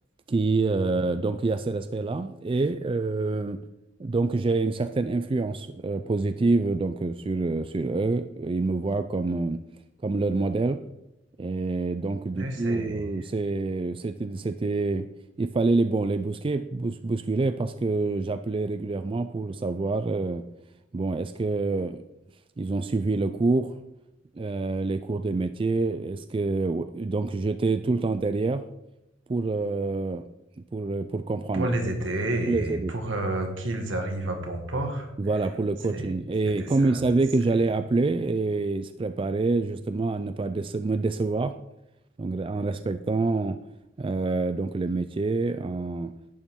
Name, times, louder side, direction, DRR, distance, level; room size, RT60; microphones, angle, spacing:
voice 1, 0.3-3.6 4.0-9.6 10.0-10.8 11.4-15.1 15.4-20.4 20.9-22.0 22.6-23.7 24.4-28.6 29.3-30.2 30.7-31.7 32.5-32.9 35.2-41.5 42.2-43.6 44.0-46.1, right 3 dB, 30° right, 10 dB, 0.4 m, -26 dB
voice 2, 12.3-13.1 31.5-35.1 35.9-36.1 36.6-37.0, right 1 dB, 80° right, 3 dB, 1.8 m, -30 dB
11.0 x 8.8 x 3.7 m, 0.88 s
head